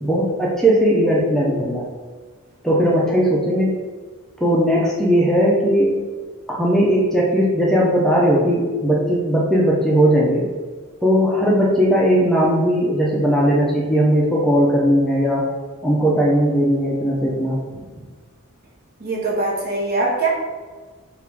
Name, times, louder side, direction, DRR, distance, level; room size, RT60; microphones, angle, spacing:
voice 1, 0.0-1.9 2.6-3.7 4.4-5.9 6.5-10.5 11.0-15.4 15.8-17.8, equal, ahead, -4 dB, 0.4 m, -18 dB
voice 2, 19.0-20.3, right 2 dB, 45° right, -3 dB, 1.0 m, -22 dB
3.4 x 2.5 x 4.4 m, 1.4 s
head